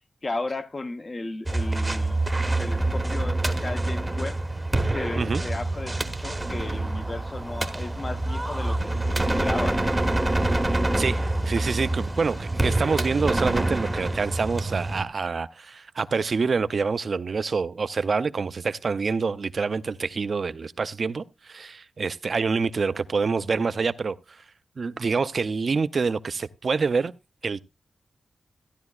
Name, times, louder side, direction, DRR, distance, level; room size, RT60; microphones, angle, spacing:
voice 1, 0.2-2.2 2.6-4.4 4.9-8.8 9.1-9.8, left 2 dB, 35° left, 0.8 m, -34 dB
sound 1, 1.5-15.0, right 2 dB, 10° right, 0.9 m, -26 dB
voice 2, 11.0-24.4 24.8-27.1 27.4-27.6, right 4 dB, 45° right, 0.5 m, -26 dB
14.5 x 10.5 x 2.4 m
wide cardioid pair, 130°, 0 cm